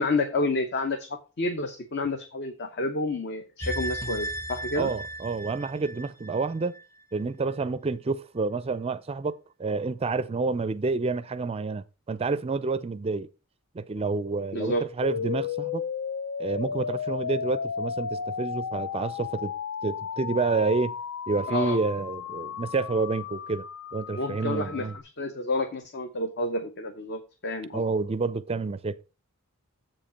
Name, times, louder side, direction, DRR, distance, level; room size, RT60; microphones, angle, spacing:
voice 1, 0.0-4.9 14.5-14.8 21.5-21.8 24.1-24.9 25.2-27.9, left 2 dB, 50° left, 0.9 m, -29 dB
sound 1, 3.6-6.8 7.2-7.3, right 1 dB, 15° left, 0.8 m, -35 dB
voice 2, 4.8-6.8 7.1-13.3 13.7-15.8 16.4-19.5 19.8-20.9 21.3-23.7 23.9-25.0 27.7-29.0, right 3 dB, 25° right, 0.4 m, -29 dB
sound 2, 15.0-25.0, left 6 dB, 70° left, 0.5 m, -34 dB
7.5 x 5.1 x 5.6 m
head